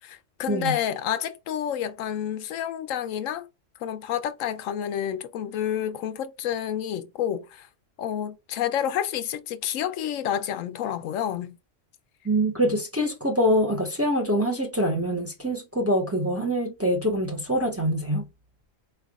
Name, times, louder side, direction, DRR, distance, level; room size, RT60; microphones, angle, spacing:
voice 1, 0.0-3.5 3.8-7.7 8.0-11.6, left 10 dB, 85° left, 1.0 m, -29 dB
voice 2, 12.2-18.3, equal, 15° right, 0.7 m, -24 dB
4.6 x 3.3 x 2.4 m
omnidirectional pair, 1.3 m